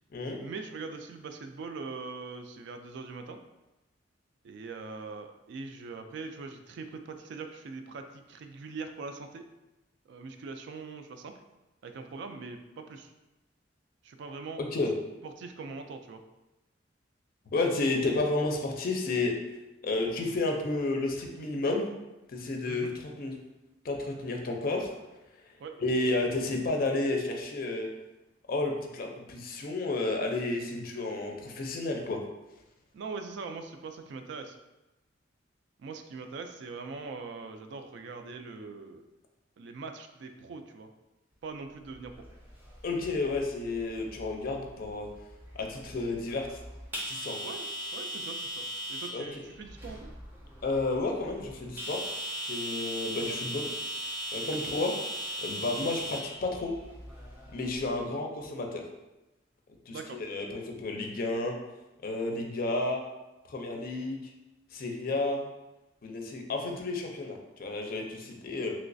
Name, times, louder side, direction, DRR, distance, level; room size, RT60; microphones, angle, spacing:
voice 1, 0.4-3.4 4.4-9.5 10.1-11.3 11.8-13.1 14.0-14.6 15.4-16.2 22.7-22.9 25.6-25.7 32.9-34.6 35.8-39.1 39.6-40.9 41.4-42.3 47.4-47.7 47.9-50.1 59.9-60.2 66.7-66.8, right 4 dB, 65° right, 6 dB, 0.3 m, -42 dB
voice 2, 14.6-14.9 17.5-19.4 19.8-21.9 22.3-22.9 23.2-23.3 23.8-24.9 25.8-27.9 28.5-32.2 42.8-45.1 45.5-46.6 47.1-47.4 49.1-49.4 50.6-52.0 52.4-53.7 54.3-54.9 55.4-56.7 57.5-58.9 59.9-61.6 62.0-63.0 63.5-64.2 64.7-65.5 66.0-68.7, left 2 dB, 50° left, 2 dB, 0.4 m, -31 dB
sound 1, 41.9-58.0, equal, 10° right, 0.6 m, -39 dB
3.1 x 3.0 x 2.6 m, 1.0 s
head